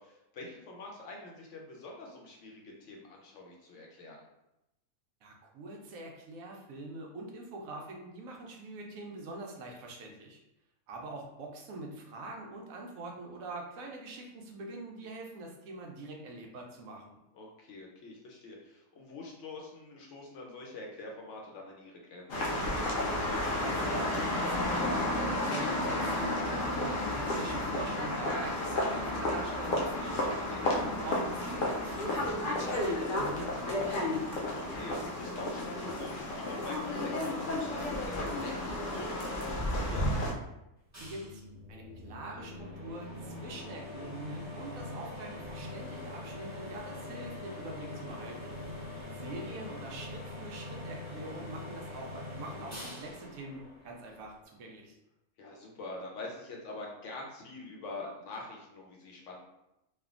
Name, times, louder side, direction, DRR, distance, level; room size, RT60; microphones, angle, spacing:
voice 1, 0.0-4.3 17.3-22.7 30.4-30.9 34.5-38.5 38.9-40.2 48.8-49.3 55.4-59.4, left 2 dB, 70° left, -1 dB, 0.8 m, -45 dB
voice 2, 5.2-10.4 10.9-17.2 23.4-34.1 41.0-41.4 41.7-48.5 49.1-55.0, right 2 dB, 75° right, 1 dB, 1.0 m, -44 dB
sound 1, 22.3-40.3, left 1 dB, 85° left, 0.4 m, -32 dB
sound 2, 40.9-54.4, left 2 dB, 20° right, 0.5 m, -43 dB
3.2 x 2.1 x 2.4 m, 0.89 s
omnidirectional pair, 1.5 m